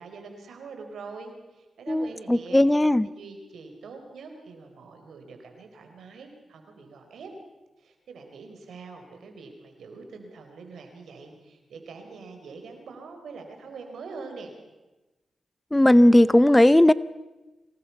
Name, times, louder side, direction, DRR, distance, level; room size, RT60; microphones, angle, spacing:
voice 1, 0.0-2.6 3.0-7.3 7.8-14.5, right 4 dB, 85° right, 5 dB, 3.9 m, -44 dB
voice 2, 1.9-3.1 15.7-16.9, left 1 dB, 15° left, 18 dB, 0.7 m, -17 dB
24.5 x 19.0 x 5.8 m, 1.1 s
cardioid pair, 55°, 0 cm